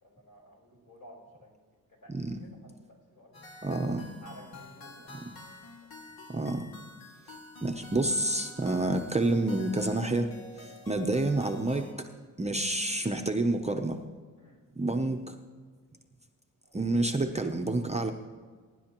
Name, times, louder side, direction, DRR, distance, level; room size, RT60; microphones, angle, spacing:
voice 1, 0.0-1.5 2.0-2.6 2.9-3.5 4.2-5.1 14.4-14.6 16.7-16.8, equal, 60° left, -2 dB, 4.6 m, -53 dB
voice 2, 2.1-2.4 3.6-4.0 6.3-6.7 7.6-10.3 10.6-11.9 12.4-14.0 14.8-15.4 16.7-18.1, right 2 dB, 20° right, 4 dB, 0.6 m, -28 dB
sound 1, 3.3-11.9, left 1 dB, 85° left, 2.1 m, -49 dB
22.5 x 10.5 x 3.0 m, 1.5 s
wide cardioid pair, 145°, 36 cm